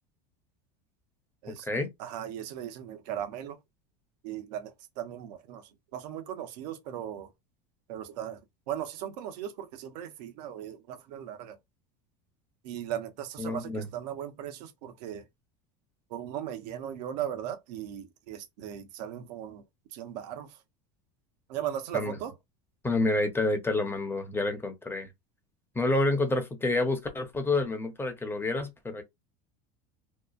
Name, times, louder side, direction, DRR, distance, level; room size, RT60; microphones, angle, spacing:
voice 1, 1.5-1.9 13.4-13.9 21.9-22.1 22.8-25.1 25.7-29.0, left 2 dB, 10° left, 0.7 m, -28 dB
voice 2, 2.0-3.6 4.2-7.3 7.9-8.4 8.7-11.6 12.6-15.2 16.1-19.6 19.9-20.6 21.5-22.3, right 10 dB, 80° right, 0.7 m, -37 dB
2.8 x 2.1 x 2.4 m
supercardioid pair, 120°, 21 cm